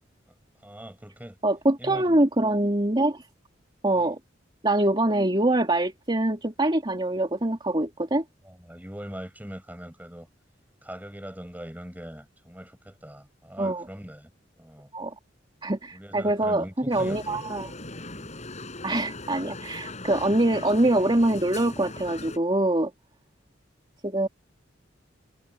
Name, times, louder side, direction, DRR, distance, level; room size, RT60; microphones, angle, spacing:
voice 1, 0.6-1.4 1.8-2.2 4.0-4.1 8.4-10.3 10.8-14.3 14.6-14.9 15.9-17.5 18.1-18.3, equal, 10° right, 6.8 m, -41 dB
voice 2, 1.4-3.3 3.8-4.2 4.6-8.2 13.6-13.8 14.9-15.1 15.6-17.7 18.8-22.9 24.0-24.3, right 1 dB, 25° right, 2.9 m, -24 dB
sound 1, 16.9-22.4, left 2 dB, 40° left, 6.7 m, -39 dB
head